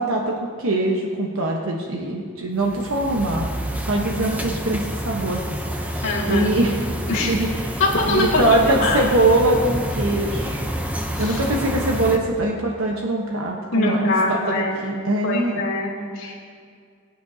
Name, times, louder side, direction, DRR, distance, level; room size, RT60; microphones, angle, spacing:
voice 1, 0.0-3.5 3.9-6.0 6.3-6.8 7.3-7.8 8.1-10.7 11.2-15.6, right 2 dB, 80° right, -1 dB, 1.1 m, -22 dB
sound 1, 2.6-12.2, equal, 5° right, 0.7 m, -28 dB
voice 2, 6.0-6.5 7.1-7.3 7.8-9.0 11.2-11.4 13.7-14.8 15.2-16.5, left 2 dB, 65° left, -9 dB, 2.9 m, -23 dB
22.0 x 9.4 x 2.8 m, 2.2 s
head